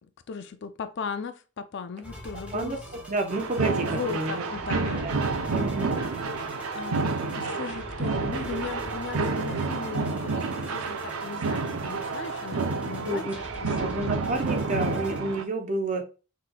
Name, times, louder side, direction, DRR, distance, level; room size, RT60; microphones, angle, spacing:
voice 1, 0.3-2.8 3.8-5.0 6.7-7.1 7.3-13.3 13.6-13.7, left 5 dB, 55° left, 0.4 m, -37 dB
sound 1, 2.0-15.2, left 1 dB, 5° right, 1.4 m, -43 dB
voice 2, 3.1-4.5 5.0-5.1 5.5-6.0 13.0-13.4 13.8-16.0, right 2 dB, 35° right, 0.8 m, -30 dB
sound 2, 3.3-15.4, right 4 dB, 85° right, 0.5 m, -29 dB
5.8 x 3.1 x 2.2 m
head